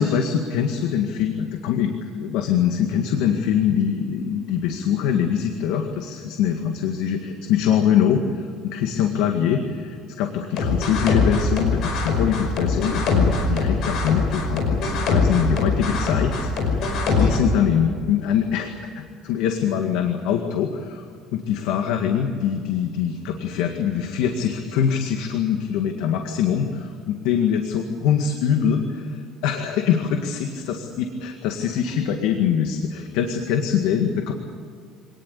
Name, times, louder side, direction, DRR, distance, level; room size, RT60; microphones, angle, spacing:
voice 1, 0.0-21.1 21.3-34.3, left 8 dB, 80° left, 4 dB, 2.0 m, -23 dB
sound 1, 10.6-17.4, left 4 dB, 50° left, 5.3 m, -22 dB
25.5 x 19.0 x 8.4 m, 2.2 s
cardioid pair, 175°, 0 cm